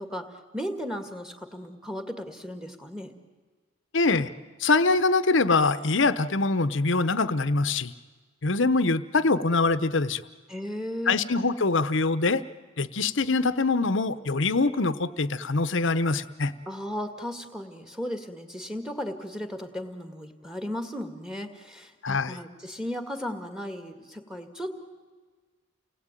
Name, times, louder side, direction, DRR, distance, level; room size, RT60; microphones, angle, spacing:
voice 1, 0.0-3.1 10.5-11.2 16.7-24.7, equal, 5° right, 7 dB, 1.9 m, -35 dB
voice 2, 3.9-4.3 4.6-7.9 8.4-10.2 11.1-12.4 12.8-16.5 22.0-22.4, left 3 dB, 60° left, 13 dB, 0.9 m, -24 dB
29.5 x 19.5 x 9.1 m, 1.4 s
head